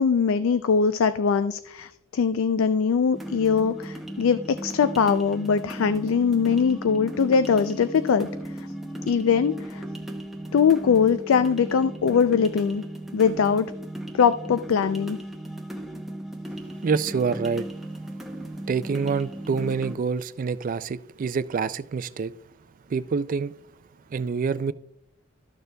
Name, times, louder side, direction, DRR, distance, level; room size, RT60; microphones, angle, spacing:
voice 1, 0.0-8.3 8.6-8.7 9.1-9.8 10.5-12.8 13.1-13.7 14.1-15.2, left 6 dB, 75° left, 0.4 m, -22 dB
sound 1, 3.1-19.9, right 1 dB, ahead, 0.8 m, -36 dB
voice 2, 16.8-17.7 18.7-22.3 22.9-23.5 24.1-24.7, right 5 dB, 40° right, 0.3 m, -26 dB
13.5 x 6.6 x 2.2 m
head